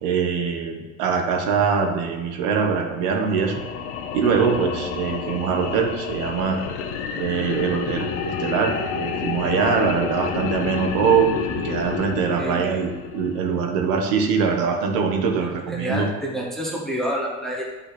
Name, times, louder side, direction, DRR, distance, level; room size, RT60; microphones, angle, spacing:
voice 1, 0.0-3.6 4.1-6.7 7.2-16.1, right 6 dB, 60° right, 4 dB, 1.3 m, -23 dB
sound 1, 3.2-13.6, left 6 dB, 75° left, 1.2 m, -30 dB
voice 2, 15.7-17.6, equal, ahead, -3 dB, 0.8 m, -28 dB
10.5 x 5.7 x 4.3 m, 1.3 s
cardioid pair, 180°, 35 cm